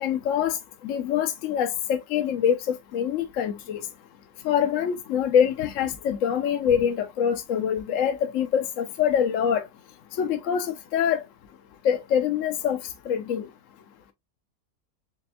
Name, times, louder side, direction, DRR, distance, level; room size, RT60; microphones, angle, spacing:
voice 1, 0.0-0.6 0.8-3.8 4.4-9.6 10.2-11.2 11.8-12.8 13.1-13.5, left 8 dB, 65° left, 0.8 m, -24 dB
4.3 x 3.4 x 2.3 m
omnidirectional pair, 1.8 m